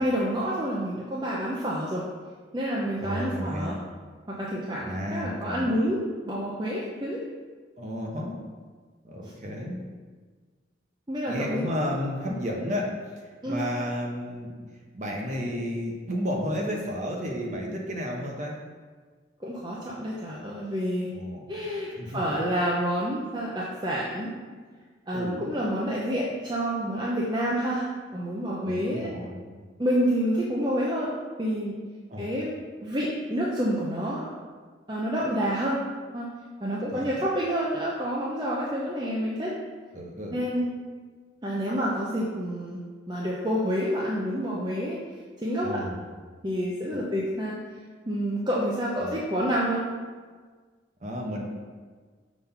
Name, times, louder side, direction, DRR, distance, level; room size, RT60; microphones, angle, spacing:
voice 1, 0.0-2.0 2.5-3.8 4.3-7.2 11.1-11.6 13.4-13.6 19.4-21.1 21.5-24.3 25.1-27.9 28.1-29.1 29.8-31.1 31.4-31.8 32.2-32.5 32.8-34.4 34.9-35.8 36.1-36.3 36.6-39.5 40.3-40.7 41.4-42.8 43.1-45.0 45.4-45.8 46.4-47.6 48.1-49.9, equal, 20° right, -5 dB, 0.7 m, -28 dB
voice 2, 3.0-3.8 4.8-5.7 7.8-8.4 9.0-9.8 11.3-14.5 14.9-18.5 21.1-21.5 22.0-22.4 25.1-25.5 28.6-29.5 32.1-32.3 36.9-37.1 39.9-40.4 45.6-46.0 46.9-47.1 49.0-49.2 51.0-51.4, equal, 40° right, -1 dB, 1.0 m, -32 dB
6.1 x 3.7 x 5.7 m, 1.5 s
head